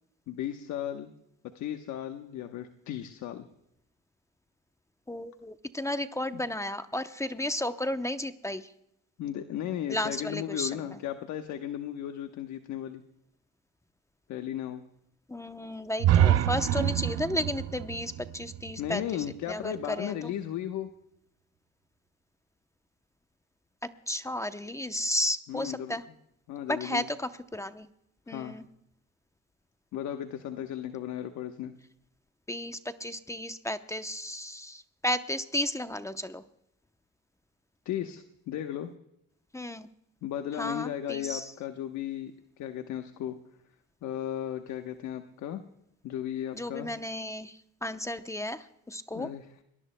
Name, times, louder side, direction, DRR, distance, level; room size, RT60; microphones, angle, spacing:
voice 1, 0.3-1.1 1.5-3.5 6.3-6.4 9.2-13.0 14.3-14.8 18.8-20.9 25.5-25.9 26.5-27.1 28.3-28.6 29.9-31.7 37.8-38.9 40.2-43.4 44.0-45.6 46.0-46.9 49.1-49.6, left 11 dB, 70° left, 6 dB, 1.1 m, -35 dB
voice 2, 5.1-8.7 9.9-11.0 15.3-20.3 24.1-26.0 26.7-27.9 28.3-28.7 32.5-36.4 39.5-39.9 40.6-41.5 46.5-49.3, left 1 dB, 10° left, 9 dB, 0.7 m, -33 dB
sound 1, 16.0-19.8, right 11 dB, 55° right, 0.8 m, -27 dB
23.5 x 18.5 x 2.2 m, 0.78 s
cardioid pair, 95°, 30 cm